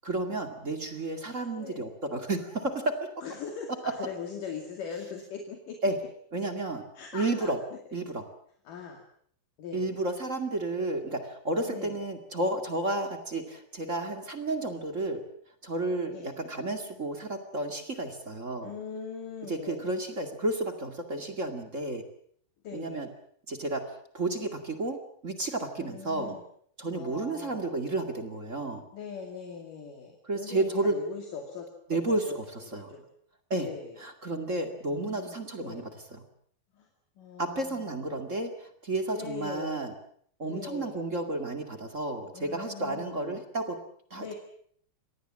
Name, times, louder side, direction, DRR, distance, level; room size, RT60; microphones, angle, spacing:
voice 1, 0.0-3.1 5.8-6.0 6.3-6.8 7.1-7.6 7.9-8.2 9.7-15.2 15.6-18.7 19.5-22.0 22.7-23.1 23.5-23.8 24.1-25.0 25.2-26.3 26.8-28.8 30.2-30.9 31.9-32.9 33.5-33.7 34.0-36.2 37.4-39.9 40.4-43.8 44.1-44.3, right 2 dB, 25° right, 6 dB, 1.9 m, -32 dB
voice 2, 1.3-1.8 3.2-5.8 7.0-7.8 8.7-9.0 9.6-9.9 11.7-12.0 14.7-14.8 16.1-16.4 18.6-19.9 22.6-23.1 25.8-26.4 26.9-27.7 28.9-33.1 33.5-34.0 34.9-35.9 36.7-36.9 37.2-38.3 39.1-39.9 40.4-41.0 42.3-43.4 44.1-44.3, left 6 dB, 65° left, 3 dB, 3.9 m, -41 dB
26.0 x 19.0 x 7.6 m, 0.62 s
omnidirectional pair, 4.1 m